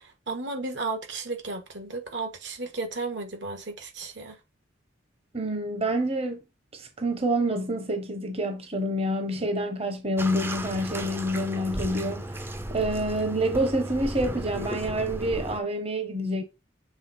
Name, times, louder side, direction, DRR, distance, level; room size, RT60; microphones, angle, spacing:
voice 1, 0.0-4.4, right 3 dB, 65° right, 1.5 m, -34 dB
voice 2, 5.3-6.4 6.7-12.2 12.7-16.4, right 1 dB, 30° right, 0.9 m, -27 dB
Bathtub (filling or washing), 10.2-15.6, right 1 dB, 10° right, 0.5 m, -35 dB
7.1 x 3.6 x 4.2 m
head